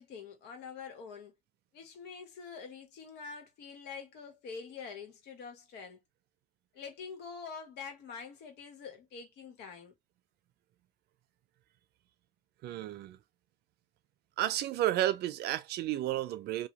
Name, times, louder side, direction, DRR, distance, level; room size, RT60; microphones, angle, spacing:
voice 1, 0.0-1.3 1.7-6.0 6.7-9.9, left 5 dB, 80° left, 1.2 m, -45 dB
voice 2, 12.6-13.2 14.4-16.7, right 13 dB, 75° right, 0.5 m, -32 dB
2.8 x 2.3 x 2.9 m
cardioid pair, 110°, 17 cm